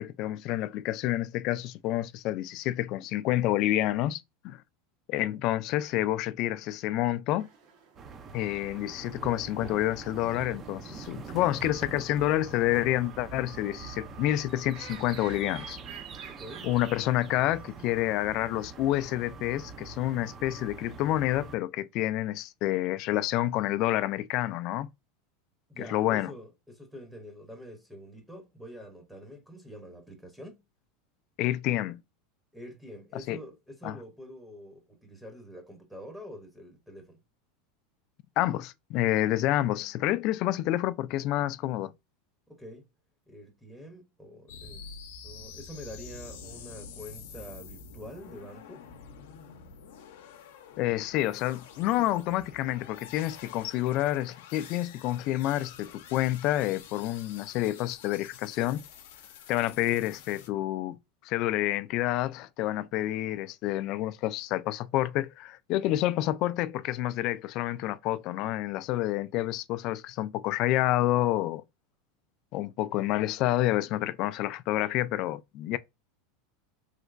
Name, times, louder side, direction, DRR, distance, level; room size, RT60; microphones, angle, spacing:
voice 1, 0.0-4.6 5.1-7.5 8.3-15.8 16.6-24.9 25.8-26.3 31.4-32.0 33.3-33.4 33.8-33.9 38.4-41.9 50.8-58.8 59.5-71.6 72.5-75.8, left 14 dB, 50° left, 0.3 m, -28 dB
sound 1, 7.4-17.9, right 6 dB, 65° right, 1.2 m, -54 dB
sound 2, 8.0-21.6, right 5 dB, 30° right, 0.5 m, -44 dB
voice 2, 16.3-16.7 25.7-30.6 32.5-37.2 42.5-42.9 43.3-48.8, equal, 5° right, 0.8 m, -46 dB
sound 3, 44.5-60.5, left 6 dB, 80° left, 0.6 m, -48 dB
3.2 x 2.9 x 2.5 m
supercardioid pair, 130°, 0 cm